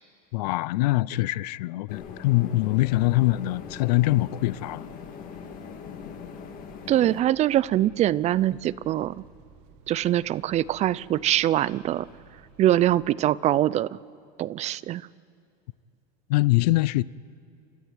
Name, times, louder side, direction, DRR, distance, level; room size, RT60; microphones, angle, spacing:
voice 1, 0.3-4.8 16.3-17.0, left 18 dB, 75° left, 0.5 m, -23 dB
sound 1, 1.9-7.2, left 6 dB, 40° left, 2.3 m, -41 dB
sound 2, 2.5-13.1, right 6 dB, 55° right, 2.2 m, -54 dB
voice 2, 6.9-9.2 9.9-12.1 12.6-14.0 14.4-15.0, right 13 dB, 35° right, 0.5 m, -23 dB
29.5 x 13.5 x 9.3 m
supercardioid pair, 125°, 21 cm